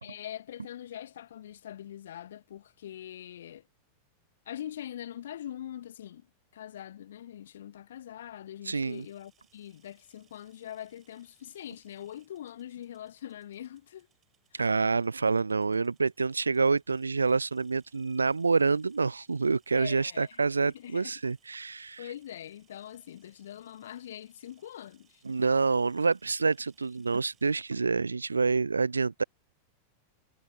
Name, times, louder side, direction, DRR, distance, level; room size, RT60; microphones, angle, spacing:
voice 1, 0.0-3.7 4.5-6.2 6.5-14.1 14.5-14.7 19.7-21.1 22.0-25.2, left 11 dB, 60° left, 1.9 m, -43 dB
voice 2, 8.7-9.1 14.5-22.1 25.2-29.2, right 4 dB, 75° right, 0.3 m, -27 dB
sound 1, 8.8-27.7, right 9 dB, 25° right, 7.0 m, -70 dB
figure-of-eight pair, 90°, 0 cm